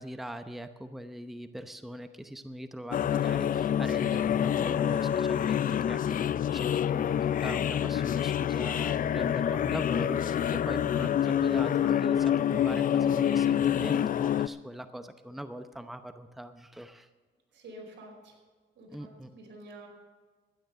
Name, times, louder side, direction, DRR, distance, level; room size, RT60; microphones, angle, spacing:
voice 1, 0.0-17.1 18.9-19.3, right 1 dB, ahead, 9 dB, 0.8 m, -41 dB
sound 1, 2.9-14.5, left 9 dB, 45° left, 0.4 m, -27 dB
voice 2, 17.5-18.3 18.7-19.9, right 1 dB, 65° right, 0 dB, 4.9 m, -48 dB
13.0 x 10.0 x 6.8 m, 1.4 s
cardioid pair, 90°, 20 cm